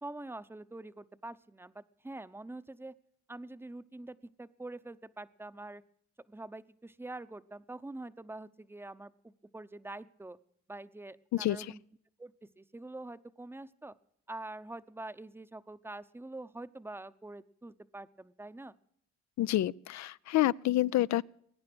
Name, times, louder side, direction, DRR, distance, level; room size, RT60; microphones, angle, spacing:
voice 1, 0.0-2.9 3.3-5.8 6.3-10.4 10.7-11.8 12.2-13.9 14.3-18.7, right 2 dB, 10° right, 0.8 m, -45 dB
voice 2, 19.4-21.2, left 15 dB, 65° left, 0.5 m, -28 dB
21.5 x 9.6 x 6.2 m
cardioid pair, 90°, 30 cm